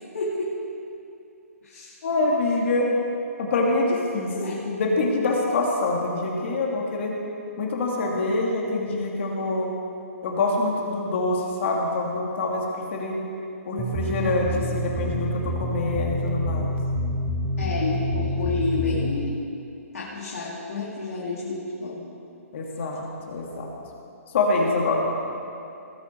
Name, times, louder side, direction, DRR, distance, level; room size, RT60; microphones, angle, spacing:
voice 1, 0.1-0.5 1.6-2.0 4.2-4.6 14.1-14.8 15.3-15.4 17.6-19.4 19.9-22.1, left 3 dB, 75° left, -6 dB, 2.8 m, -30 dB
voice 2, 2.0-2.9 3.4-7.1 7.6-9.7 10.2-13.2 13.7-16.7 22.5-23.7 24.3-25.1, left 2 dB, 55° left, -1 dB, 2.9 m, -25 dB
sound 1, 13.8-19.1, equal, 10° right, 1.0 m, -27 dB
19.5 x 8.7 x 4.8 m, 2.6 s
hypercardioid pair, 150°, 8 cm